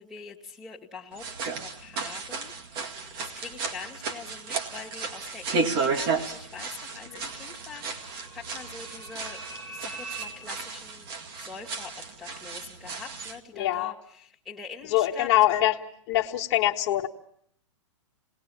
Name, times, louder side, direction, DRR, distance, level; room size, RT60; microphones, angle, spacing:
voice 1, 0.0-9.4 9.7-11.1 11.4-15.3, left 5 dB, ahead, -6 dB, 2.1 m, -44 dB
sound 1, 1.1-13.4, right 4 dB, 50° right, 2.1 m, -34 dB
sound 2, 6.4-10.2, right 4 dB, 80° right, 6.6 m, -44 dB
voice 2, 13.6-13.9 14.9-15.7 16.1-17.1, left 14 dB, 40° left, -1 dB, 1.4 m, -23 dB
27.0 x 19.5 x 7.2 m, 0.67 s
hypercardioid pair, 140°, 16 cm